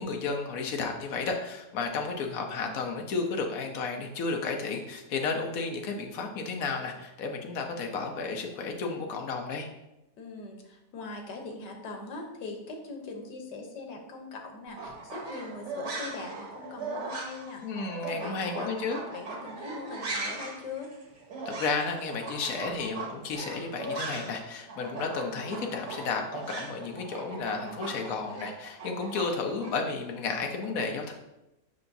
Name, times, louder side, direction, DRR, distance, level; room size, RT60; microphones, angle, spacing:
voice 1, 0.0-9.7 17.6-19.0 21.4-31.1, left 4 dB, 60° left, 3 dB, 1.2 m, -32 dB
voice 2, 10.2-17.6 18.2-18.7 19.1-20.9, left 3 dB, 90° left, 3 dB, 1.6 m, -41 dB
sound 1, 14.7-24.4 24.7-29.7, right 3 dB, 90° right, 2.0 m, -39 dB
6.8 x 5.6 x 2.6 m, 0.92 s
omnidirectional pair, 1.8 m